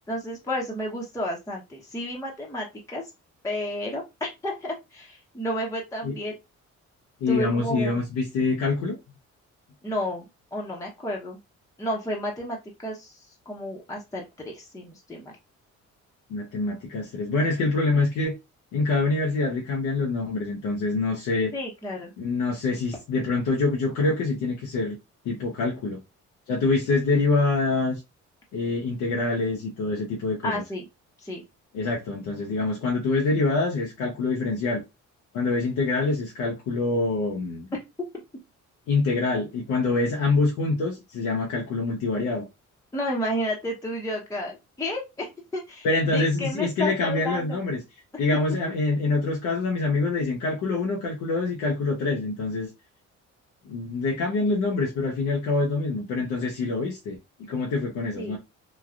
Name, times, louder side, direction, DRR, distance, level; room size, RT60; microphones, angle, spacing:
voice 1, 0.1-3.0 3.4-6.3 7.3-8.0 9.8-10.2 10.5-11.4 11.8-13.2 13.5-15.3 21.5-22.1 30.4-30.9 31.2-31.4 42.9-47.6 58.2-58.4, left 1 dB, 10° left, 0.8 m, -31 dB
voice 2, 7.2-9.0 16.3-18.3 18.7-21.5 22.2-25.0 25.2-26.0 26.5-28.0 28.5-30.6 31.7-34.8 35.3-37.7 38.9-42.5 45.8-47.8 48.2-52.7 53.6-58.4, left 3 dB, 90° left, 0.7 m, -25 dB
3.2 x 2.3 x 2.4 m
cardioid pair, 90°, 30 cm